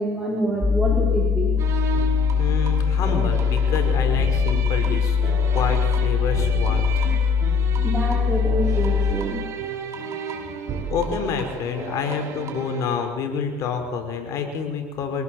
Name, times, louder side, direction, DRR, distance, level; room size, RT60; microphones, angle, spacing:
voice 1, 0.0-1.6 7.8-9.4, right 1 dB, 5° right, -2 dB, 5.0 m, -26 dB
sound 1, 0.6-9.1, left 6 dB, 10° left, 2.5 m, -21 dB
sound 2, 1.6-13.1, right 5 dB, 40° right, 5.4 m, -33 dB
voice 2, 2.4-6.9 10.9-15.2, left 5 dB, 50° left, 5 dB, 5.0 m, -28 dB
25.5 x 18.5 x 7.9 m, 1.4 s
supercardioid pair, 100°, 7 cm